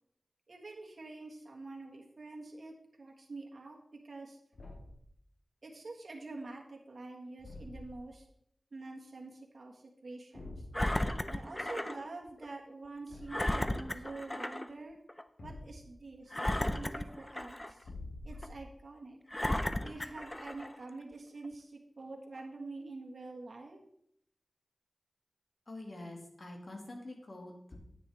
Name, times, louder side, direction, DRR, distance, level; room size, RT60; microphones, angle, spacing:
voice 1, 0.5-3.8 4.0-4.4 5.6-8.2 8.7-10.5 11.3-15.0 15.4-17.8 18.2-19.2 19.8-23.8, right 3 dB, 75° right, 0 dB, 1.6 m, -46 dB
Thump thud, 4.5-5.1 7.4-8.1 10.3-10.8 13.1-13.6 15.4-16.0 17.8-18.8, left 2 dB, 80° left, 2.7 m, -47 dB
Engine, 10.7-12.0 12.4-12.5 13.3-14.7 15.1-15.2 16.3-17.8 18.4-18.5 19.3-20.8 21.4-21.5, left 1 dB, 20° left, 0.6 m, -34 dB
voice 2, 25.7-27.8, left 2 dB, 55° left, 1 dB, 2.3 m, -46 dB
9.9 x 9.1 x 3.5 m, 0.72 s
wide cardioid pair, 70°, 0 cm